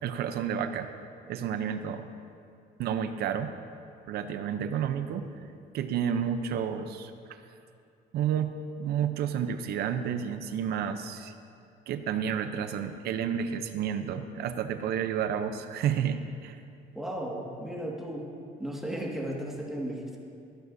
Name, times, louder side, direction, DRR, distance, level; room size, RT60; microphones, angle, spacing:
voice 1, 0.0-0.9 1.3-2.1 2.8-3.5 4.1-5.3 5.7-7.1 8.1-11.3 11.9-16.6, right 8 dB, 70° right, 9 dB, 0.6 m, -30 dB
voice 2, 16.9-18.3 18.6-20.2, right 1 dB, ahead, -3 dB, 1.7 m, -35 dB
14.0 x 10.5 x 2.6 m, 2.5 s
cardioid pair, 110°, 17 cm